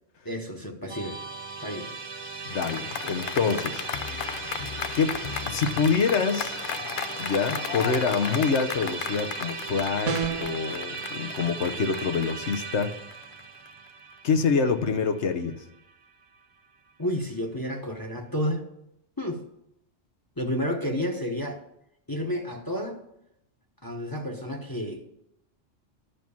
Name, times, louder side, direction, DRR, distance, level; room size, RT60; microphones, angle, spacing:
voice 1, 0.2-1.2 1.6-1.9 17.0-18.6 19.2-19.4 20.4-21.6 22.1-23.0 23.8-25.1, equal, 20° left, 2 dB, 1.1 m, -31 dB
Musical instrument, 0.9-16.1, right 4 dB, 35° right, 0.6 m, -37 dB
voice 2, 2.5-3.9 4.9-6.6 7.2-13.0 14.2-15.6, left 5 dB, 75° left, 7 dB, 1.2 m, -26 dB
sound 1, 2.5-13.9, left 7 dB, 55° left, 0.7 m, -35 dB
sound 2, 10.1-10.6, right 6 dB, 90° right, 1.2 m, -28 dB
11.5 x 6.0 x 7.1 m, 0.80 s
omnidirectional pair, 1.2 m